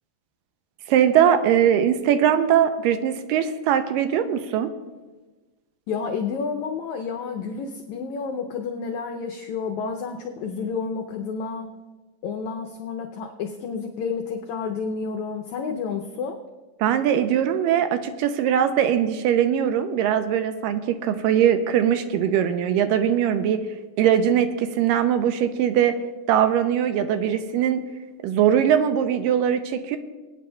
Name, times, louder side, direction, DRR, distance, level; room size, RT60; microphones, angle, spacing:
voice 1, 0.9-4.7 16.8-23.6 24.0-26.0 26.3-27.8 28.2-30.0, right 9 dB, 80° right, 9 dB, 2.1 m, -21 dB
voice 2, 5.9-11.7 12.2-16.4, left 5 dB, 85° left, 3 dB, 1.6 m, -30 dB
24.0 x 9.1 x 2.2 m, 1.2 s
omnidirectional pair, 4.1 m